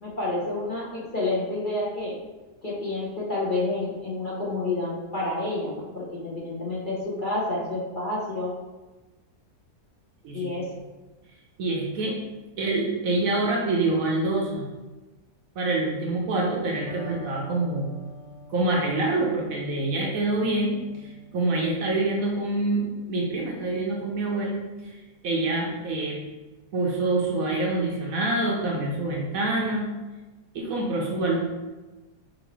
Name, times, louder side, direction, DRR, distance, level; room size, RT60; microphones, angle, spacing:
voice 1, 0.0-2.1 2.6-8.5 10.3-10.7, left 2 dB, 40° left, -7 dB, 0.9 m, -29 dB
voice 2, 11.6-12.2 12.6-14.7 15.6-17.9 18.5-20.7 21.3-24.6 25.2-26.2 26.7-29.8 30.5-31.4, right 2 dB, 65° right, -1 dB, 1.0 m, -26 dB
Electric guitar, 16.9-24.7, left 2 dB, 85° left, 1.5 m, -46 dB
5.1 x 2.8 x 3.1 m, 1.2 s
omnidirectional pair, 1.7 m